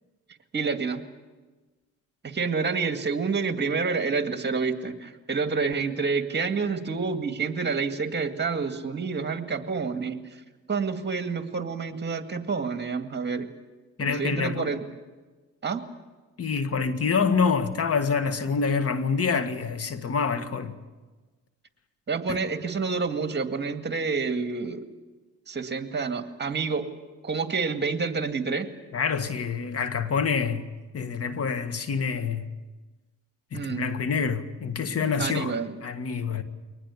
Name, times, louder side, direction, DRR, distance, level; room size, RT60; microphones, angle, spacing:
voice 1, 0.5-1.0 2.2-10.4 10.7-13.5 14.0-14.8 15.6-15.8 22.1-24.9 25.5-26.9 27.2-28.7 33.5-33.9 35.2-35.8, right 5 dB, 35° right, 2.1 m, -28 dB
voice 2, 14.0-14.7 16.4-20.8 22.3-22.4 28.9-30.7 30.9-32.5 33.5-36.4, left 5 dB, 50° left, 1.7 m, -27 dB
23.5 x 19.5 x 8.5 m
cardioid pair, 90°, 30 cm